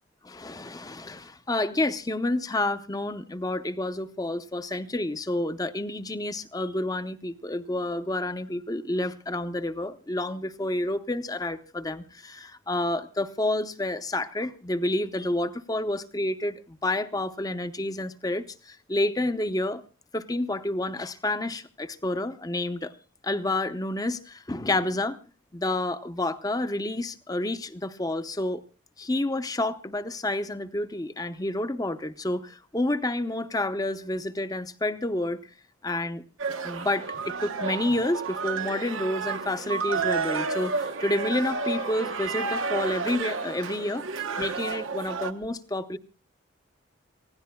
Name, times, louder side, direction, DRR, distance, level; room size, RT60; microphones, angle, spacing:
voice 1, 0.2-19.8 20.1-23.0 23.2-25.2 25.5-28.6 29.0-35.4 35.8-36.2 36.6-44.1 44.4-46.0, left 1 dB, 20° left, 0.7 m, -29 dB
sound 1, 36.4-45.3, right 5 dB, 85° right, 1.1 m, -31 dB
27.5 x 16.5 x 2.3 m
head